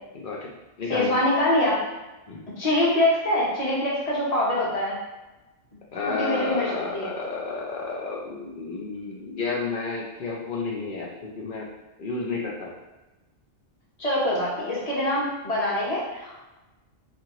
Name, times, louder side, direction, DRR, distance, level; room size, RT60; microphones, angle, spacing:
voice 1, 0.1-0.5 0.8-1.1 2.3-2.4 5.9-11.1 11.4-11.6 12.0-12.7, left 4 dB, 60° left, -3 dB, 0.6 m, -31 dB
voice 2, 0.9-1.7 2.6-5.0 6.0-7.1 14.0-16.4, left 1 dB, 35° left, -7 dB, 1.0 m, -24 dB
2.7 x 2.5 x 2.9 m, 1.1 s
omnidirectional pair, 1.2 m